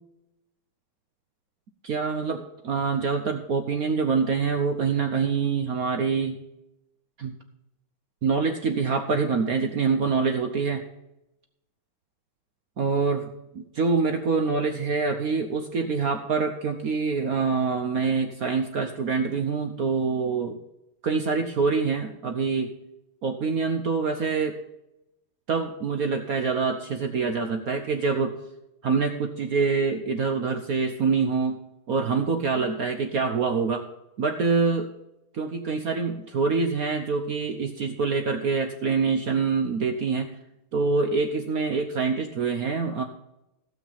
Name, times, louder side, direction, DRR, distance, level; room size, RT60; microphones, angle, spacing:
voice 1, 1.8-6.4 7.2-7.3 8.2-10.8 12.8-13.3 13.5-20.6 21.0-22.7 23.2-24.6 25.5-28.4 28.8-31.6 31.9-33.8 34.2-34.9 35.3-40.3 40.7-43.0, right 5 dB, 60° right, 6 dB, 1.0 m, -25 dB
15.5 x 6.2 x 5.7 m, 0.89 s
omnidirectional pair, 2.4 m